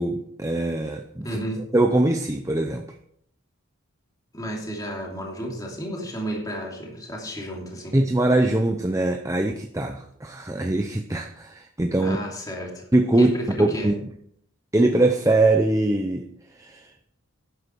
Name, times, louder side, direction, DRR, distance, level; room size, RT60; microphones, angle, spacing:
voice 1, 0.0-1.4 1.7-2.8 7.9-12.2 12.9-13.3 13.6-13.9 14.7-16.3 16.6-16.9, right 2 dB, 15° right, 4 dB, 0.6 m, -22 dB
voice 2, 1.2-1.6 4.3-8.0 12.0-12.8 13.2-13.9, right 1 dB, 15° left, -1 dB, 2.7 m, -32 dB
12.0 x 10.0 x 4.6 m, 0.68 s
head